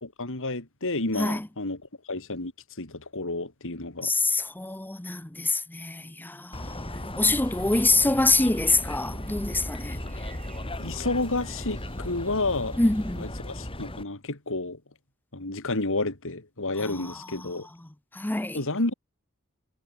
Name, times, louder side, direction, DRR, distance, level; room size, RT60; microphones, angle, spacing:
voice 1, 0.0-1.8 2.1-2.5 2.8-4.1 10.8-12.8 13.2-14.8 15.3-17.7 18.5-18.9, left 2 dB, 60° left, 3.2 m, -30 dB
voice 2, 4.0-10.0 12.8-13.3 17.0-17.5 18.1-18.6, left 2 dB, 10° left, 0.6 m, -26 dB
sound 1, 6.5-14.0, left 1 dB, 25° left, 5.2 m, -36 dB
sound 2, 7.2-13.3, right 1 dB, 35° right, 5.9 m, -49 dB
head